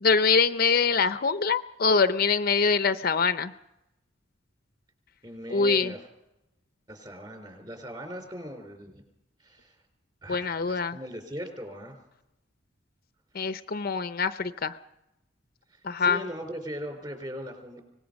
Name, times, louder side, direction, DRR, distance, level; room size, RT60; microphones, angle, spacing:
voice 1, 0.0-3.5 5.5-5.9 10.3-11.0 13.3-14.7 15.8-16.2, left 5 dB, 50° left, 11 dB, 0.7 m, -24 dB
voice 2, 5.2-6.0 6.9-9.0 9.4-9.8 10.2-12.0 16.0-17.8, equal, 25° right, 5 dB, 4.3 m, -39 dB
25.0 x 19.5 x 5.3 m, 0.90 s
head